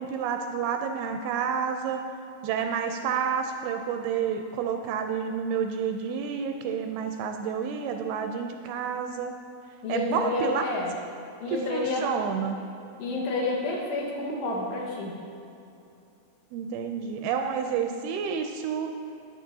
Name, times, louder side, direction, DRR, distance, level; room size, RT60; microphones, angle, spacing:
voice 1, 0.0-2.0 2.4-9.3 9.9-10.7 11.5-12.6 16.5-18.9, right 7 dB, 80° right, 5 dB, 2.3 m, -29 dB
voice 2, 9.8-10.9 11.4-12.0 13.0-15.2, left 2 dB, 85° left, -2 dB, 3.6 m, -29 dB
12.5 x 9.8 x 2.8 m, 2.6 s
omnidirectional pair, 4.8 m